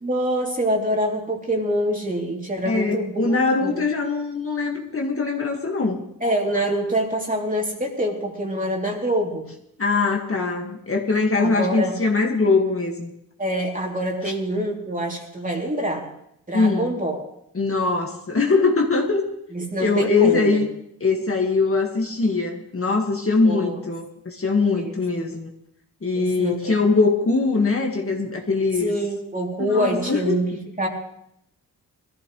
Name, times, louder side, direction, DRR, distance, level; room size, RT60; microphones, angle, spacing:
voice 1, 0.0-3.3 3.6-3.7 6.2-9.5 11.4-12.0 13.4-16.1 16.5-17.2 19.5-20.6 23.4-23.8 24.8-24.9 26.1-26.8 28.8-30.5 30.8-30.9, right 1 dB, 20° right, 0 dB, 3.2 m, -25 dB
voice 2, 2.7-6.0 9.8-13.1 14.2-14.3 16.5-16.9 17.5-19.3 19.8-20.7 21.0-25.5 26.0-28.9 29.6-30.4, left 4 dB, 40° left, 1 dB, 1.9 m, -22 dB
21.0 x 14.5 x 3.3 m, 0.77 s
cardioid pair, 85°, 36 cm